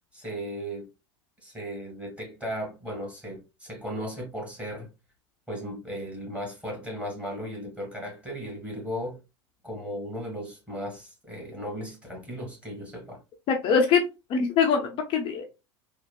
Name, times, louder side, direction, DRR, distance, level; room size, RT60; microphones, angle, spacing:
voice 1, 0.1-0.9 1.4-4.9 5.5-9.2 9.6-13.2, equal, 10° right, 1.6 m, -36 dB
voice 2, 13.5-14.0 14.3-15.4, left 6 dB, 35° left, 0.6 m, -23 dB
3.4 x 2.3 x 2.2 m
figure-of-eight pair, 85°, 16 cm